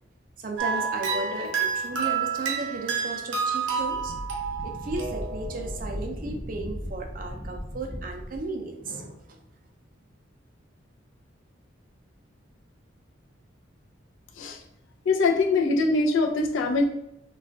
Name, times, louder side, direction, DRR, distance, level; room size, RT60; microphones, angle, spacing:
voice 1, 0.4-4.1 4.6-9.4, right 3 dB, 45° right, 3 dB, 0.4 m, -35 dB
sound 1, 0.6-5.7, right 5 dB, 75° right, 0.8 m, -29 dB
Wind, 3.7-8.5, equal, 15° left, 0.9 m, -37 dB
voice 2, 15.0-16.8, left 3 dB, 80° left, 2 dB, 0.4 m, -23 dB
2.3 x 2.3 x 3.4 m, 0.85 s
head